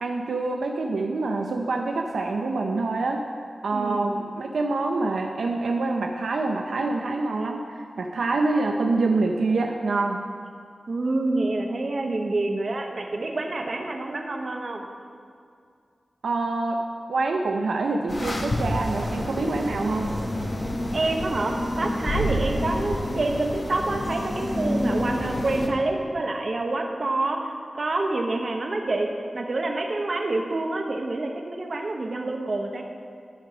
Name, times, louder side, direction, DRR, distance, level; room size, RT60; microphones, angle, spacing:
voice 1, 0.0-3.2 3.6-10.2 16.2-16.8 17.1-20.1, right 3 dB, 85° right, 2 dB, 0.6 m, -26 dB
voice 2, 3.7-4.1 10.9-14.9 20.9-32.8, right 2 dB, 50° right, 2 dB, 1.0 m, -27 dB
sound 1, 18.1-25.7, left 1 dB, 35° left, 1.2 m, -28 dB
11.5 x 4.7 x 6.0 m, 2.3 s
wide cardioid pair, 90°, 0 cm